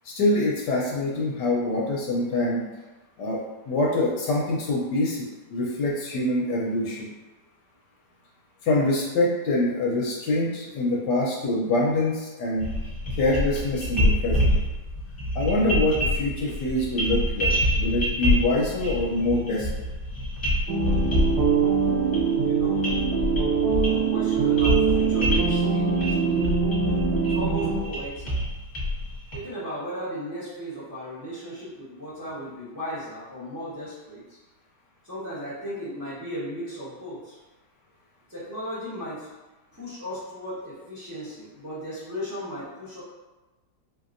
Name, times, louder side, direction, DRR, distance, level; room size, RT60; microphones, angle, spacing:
voice 1, 0.0-2.6 3.2-3.4 3.7-7.1 8.6-12.7 13.1-14.6 15.3-19.7, left 2 dB, 75° left, -3 dB, 1.2 m, -25 dB
sound 1, 12.6-29.4, equal, 30° left, 1.1 m, -27 dB
sound 2, 20.7-27.8, right 6 dB, 80° right, 1.3 m, -23 dB
voice 2, 22.4-22.9 23.9-26.4 27.2-28.3 29.3-34.4 35.0-37.4 38.3-39.3 39.7-43.0, equal, 15° right, -13 dB, 0.7 m, -36 dB
4.1 x 2.7 x 2.5 m, 1.1 s
omnidirectional pair, 2.0 m